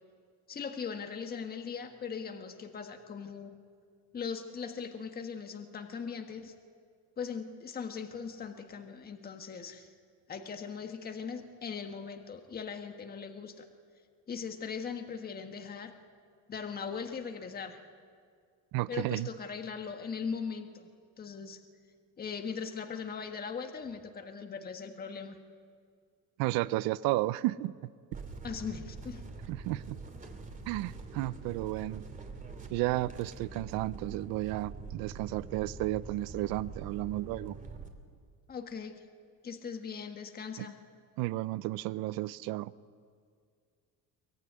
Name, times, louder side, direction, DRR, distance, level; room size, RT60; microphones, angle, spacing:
voice 1, 0.5-3.6 4.1-6.5 7.2-9.9 10.3-13.7 14.3-15.9 16.5-17.8 18.9-20.9 21.2-21.6 22.2-25.4 28.4-29.2 38.5-39.1 39.4-40.8, left 6 dB, 25° left, 5 dB, 1.6 m, -39 dB
voice 2, 18.7-19.3 26.4-27.9 29.5-30.0 30.7-32.0 32.7-37.6 40.6-40.7 41.2-42.7, right 17 dB, 80° right, 17 dB, 0.7 m, -33 dB
sound 1, 28.1-37.9, right 4 dB, 25° right, 2.7 m, -44 dB
24.0 x 19.0 x 9.8 m, 2.1 s
cardioid pair, 140°, 35 cm